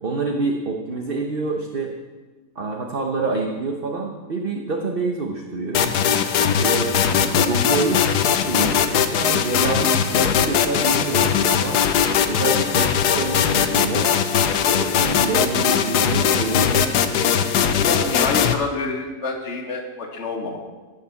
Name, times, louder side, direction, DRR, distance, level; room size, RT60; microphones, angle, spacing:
voice 1, 0.0-1.9 2.5-5.9 6.6-6.9 7.2-11.8 12.2-14.1 14.6-17.4, right 3 dB, 40° right, 2 dB, 1.1 m, -27 dB
sound 1, 5.7-18.5, left 8 dB, 75° left, 1.3 m, -20 dB
voice 2, 17.8-20.6, left 3 dB, 40° left, 0 dB, 1.9 m, -27 dB
17.0 x 6.7 x 7.1 m, 1.3 s
omnidirectional pair, 1.8 m